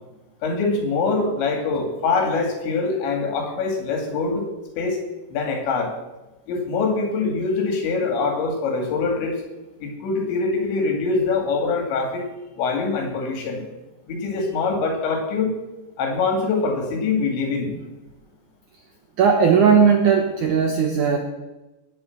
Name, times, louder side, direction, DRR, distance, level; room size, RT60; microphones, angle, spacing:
voice 1, 0.4-4.5 4.8-5.0 5.3-5.9 6.5-9.4 9.8-12.2 12.6-13.6 14.1-15.5 16.0-17.8, left 4 dB, 90° left, 3 dB, 4.8 m, -24 dB
voice 2, 19.2-21.2, right 6 dB, 75° right, 4 dB, 1.8 m, -17 dB
18.5 x 7.0 x 7.3 m, 1.1 s
omnidirectional pair, 5.1 m